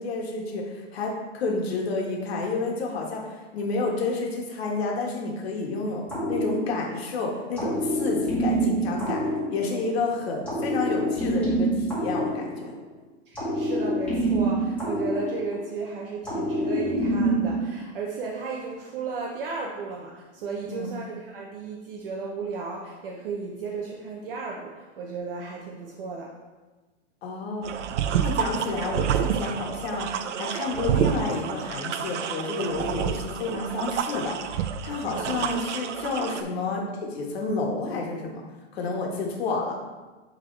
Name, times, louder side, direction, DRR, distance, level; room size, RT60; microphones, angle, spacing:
voice 1, 0.0-9.2 9.5-12.7 20.7-20.9 27.2-27.7 28.1-34.6 34.8-38.4 38.7-39.8, left 3 dB, 60° left, 0 dB, 1.7 m, -30 dB
sound 1, 6.1-7.1 7.5-10.0 10.4-12.9 13.3-15.8 16.2-17.7, right 1 dB, 5° left, 1.8 m, -26 dB
voice 2, 13.3-26.3, right 4 dB, 50° right, -1 dB, 0.9 m, -34 dB
sound 2, 27.6-36.4, right 8 dB, 80° right, 0.6 m, -29 dB
10.0 x 3.7 x 3.3 m, 1.2 s
hypercardioid pair, 160°, 36 cm